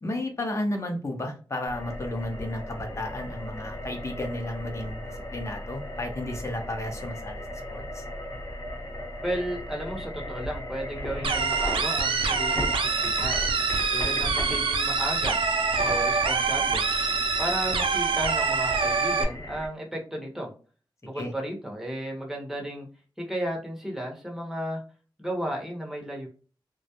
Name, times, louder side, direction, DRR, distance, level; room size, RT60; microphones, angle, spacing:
voice 1, 0.0-7.4 7.7-8.0 21.1-21.3, left 1 dB, 35° left, 3 dB, 0.6 m, -33 dB
sound 1, 1.7-19.7, left 1 dB, 50° left, 1.1 m, -37 dB
voice 2, 9.2-13.4 13.9-15.3 15.8-16.9 17.4-20.5 21.0-22.9 23.2-24.8 25.2-26.3, equal, 5° right, -1 dB, 0.8 m, -34 dB
sound 2, 11.2-19.2, right 4 dB, 80° right, 0.4 m, -25 dB
2.2 x 2.0 x 2.7 m, 0.37 s
wide cardioid pair, 110°, 9 cm